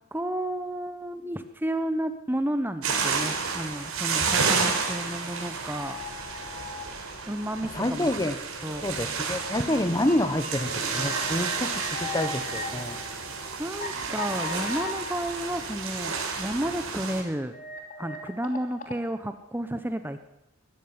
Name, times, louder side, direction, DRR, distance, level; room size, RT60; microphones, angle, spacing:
voice 1, 0.1-6.0 7.2-8.1 8.6-9.2 13.3-17.6 18.0-20.2, right 1 dB, 10° right, 9 dB, 1.0 m, -32 dB
sound 1, 2.8-17.2, right 5 dB, 90° right, 5.1 m, -31 dB
sound 2, 5.7-6.8 7.5-7.6 9.4-9.5 9.7-9.8 10.1-13.9 14.2-16.0 17.5-19.0, left 3 dB, 40° left, 3.1 m, -39 dB
voice 2, 7.7-8.4 8.8-13.0, left 1 dB, 15° left, 11 dB, 1.2 m, -28 dB
19.5 x 14.5 x 9.6 m, 0.91 s
head